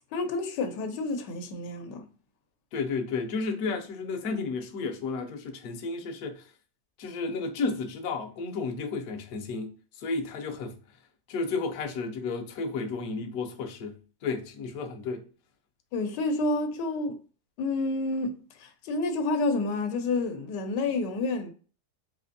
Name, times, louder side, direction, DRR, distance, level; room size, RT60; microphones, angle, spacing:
voice 1, 0.1-2.0 15.9-17.2 17.6-21.5, left 2 dB, 85° left, 1.3 m, -29 dB
voice 2, 2.7-6.5 7.0-10.8 11.3-15.2, left 4 dB, 70° left, 1.0 m, -32 dB
4.1 x 2.5 x 2.5 m
omnidirectional pair, 1.8 m